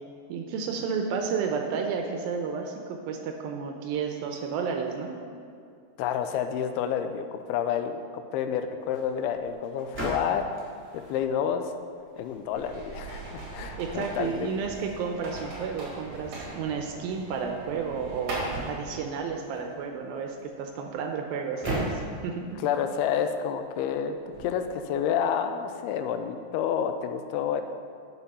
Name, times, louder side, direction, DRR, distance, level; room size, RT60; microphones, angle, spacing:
voice 1, 0.3-5.2 13.8-22.6, right 5 dB, 80° right, 3 dB, 2.4 m, -32 dB
voice 2, 6.0-10.5 10.9-11.7 12.2-14.5 22.6-27.6, left 8 dB, 85° left, 7 dB, 2.5 m, -29 dB
sound 1, 8.8-25.0, right 1 dB, 5° right, 1.4 m, -41 dB
sound 2, 12.5-18.7, right 2 dB, 60° right, 3.2 m, -40 dB
9.8 x 5.9 x 5.5 m, 2.3 s
omnidirectional pair, 4.4 m